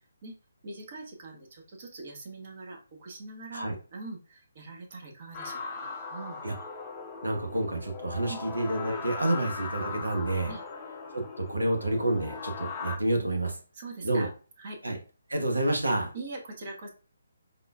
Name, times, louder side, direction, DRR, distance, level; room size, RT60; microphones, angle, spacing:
voice 1, 0.6-6.4 8.3-8.4 10.5-10.6 13.7-14.3 14.6-14.8 16.1-16.9, right 3 dB, 40° right, 1 dB, 0.9 m, -42 dB
sound 1, 5.3-13.0, left 4 dB, 20° left, 0.6 m, -39 dB
voice 2, 7.2-10.5 11.1-13.6 14.0-14.3 14.8-15.0 15.3-16.1, right 1 dB, 80° right, 3 dB, 0.8 m, -29 dB
5.2 x 2.3 x 2.2 m, 0.37 s
figure-of-eight pair, 140°, 0 cm